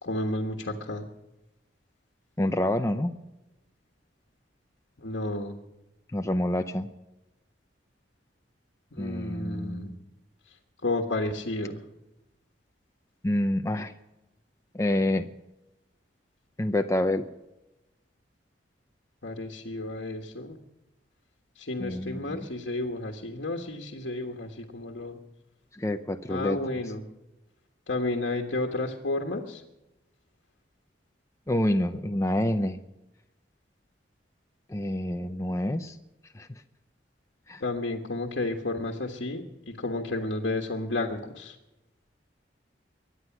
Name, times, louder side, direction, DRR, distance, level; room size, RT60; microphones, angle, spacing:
voice 1, 0.0-1.1 5.0-5.5 9.0-9.9 10.8-11.8 19.2-20.6 21.6-25.2 26.3-27.0 27.9-29.6 37.6-41.6, left 2 dB, 80° left, 1 dB, 1.5 m, -32 dB
voice 2, 2.4-3.2 6.1-6.9 9.0-10.0 13.2-13.9 14.7-15.3 16.6-17.3 21.8-22.5 25.7-26.6 31.5-32.8 34.7-35.9 36.3-36.5 37.5-37.6, left 1 dB, 15° left, 6 dB, 0.6 m, -27 dB
23.0 x 9.8 x 6.0 m, 0.97 s
head